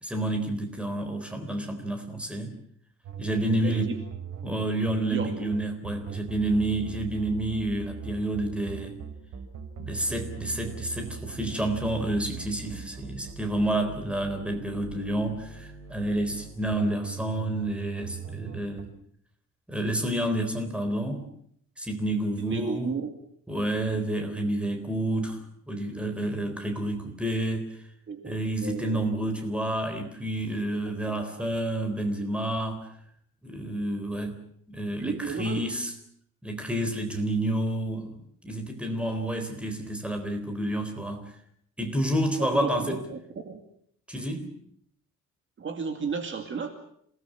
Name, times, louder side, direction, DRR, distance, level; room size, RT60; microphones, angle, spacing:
voice 1, 0.0-2.5 3.2-4.0 4.4-9.0 9.9-18.9 19.7-21.3 21.8-22.9 23.5-25.4 25.7-27.7 28.2-32.9 33.4-34.4 34.7-35.9 36.4-38.2 38.4-41.4 41.8-43.0 44.1-44.5, right 1 dB, 5° right, 5 dB, 3.8 m, -29 dB
sound 1, 3.0-18.8, right 7 dB, 90° right, 5.5 m, -40 dB
voice 2, 3.6-4.0 5.1-5.5 6.1-6.2 22.4-23.1 23.8-24.1 28.1-28.2 28.6-29.1 31.0-31.6 35.0-35.7 42.4-43.2 43.5-43.6 45.6-46.7, right 5 dB, 40° right, 5 dB, 2.4 m, -34 dB
27.5 x 18.5 x 7.5 m, 0.68 s
cardioid pair, 170°, 30 cm